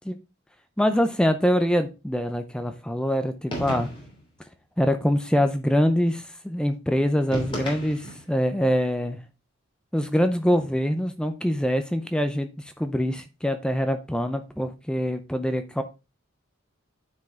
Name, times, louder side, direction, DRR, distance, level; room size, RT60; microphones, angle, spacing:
voice 1, 0.8-3.9 4.8-9.2 9.9-12.5 12.8-15.8, equal, 5° left, 0.5 m, -24 dB
sound 1, 3.5-4.2 7.3-8.3, equal, 25° left, 3.0 m, -33 dB
9.4 x 4.8 x 3.6 m
head